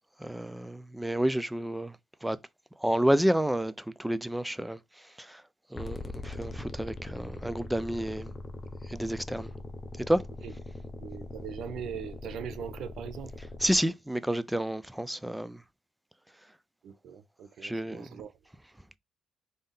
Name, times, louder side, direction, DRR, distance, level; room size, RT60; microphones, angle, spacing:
voice 1, 0.2-2.0 2.2-2.4 2.8-3.7 4.0-4.8 5.2-5.4 5.7-8.3 8.9-9.5 10.1-10.2 13.6-15.6 17.6-18.2, right 1 dB, 5° right, 0.3 m, -29 dB
sound 1, 5.7-13.8, left 2 dB, 35° left, 0.7 m, -41 dB
voice 2, 11.0-13.3 16.8-18.3, right 8 dB, 75° right, 0.5 m, -40 dB
3.6 x 2.7 x 3.5 m
cardioid pair, 90°, 0 cm